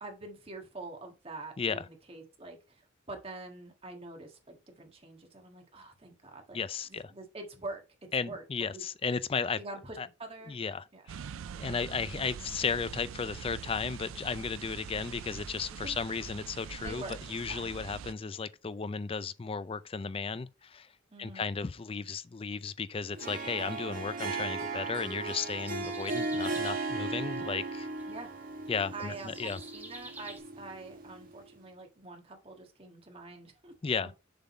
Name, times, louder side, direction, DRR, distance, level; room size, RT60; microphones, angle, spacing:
voice 1, 0.0-6.6 6.9-8.4 8.7-8.8 9.6-10.6 10.9-11.1 15.8-16.0 16.8-17.2 17.5-18.0 21.1-21.4 28.1-28.3 28.9-33.8 34.0-34.1, right 2 dB, 30° right, 1.6 m, -45 dB
voice 2, 6.5-7.1 8.1-9.6 10.0-10.1 10.5-10.8 11.5-17.0 17.3-20.9 21.2-27.9 28.7-29.6 33.8-34.1, left 5 dB, 25° left, 0.4 m, -34 dB
sound 1, 11.1-18.1, right 7 dB, 80° right, 0.4 m, -43 dB
Harp, 23.1-31.4, right 3 dB, 45° right, 1.3 m, -37 dB
sound 2, 23.5-30.4, right 2 dB, 10° right, 1.0 m, -52 dB
7.0 x 3.8 x 5.4 m
head